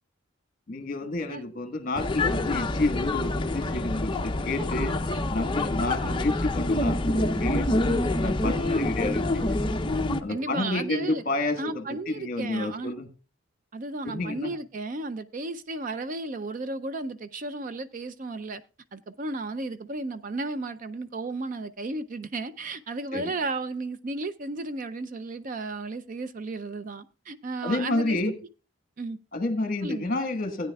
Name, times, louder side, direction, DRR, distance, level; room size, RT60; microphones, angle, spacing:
voice 1, 0.7-5.0 5.3-9.6 10.2-13.1 14.0-14.5 23.1-23.3 27.6-28.3 29.3-30.7, left 2 dB, 40° left, 1.4 m, -30 dB
sound 1, 2.0-10.2, left 2 dB, 20° left, 0.5 m, -26 dB
voice 2, 10.3-11.2 11.6-12.9 13.7-18.6 18.9-28.2 29.0-29.2 29.8-30.1, right 2 dB, 40° right, 0.4 m, -34 dB
17.0 x 9.4 x 2.3 m
head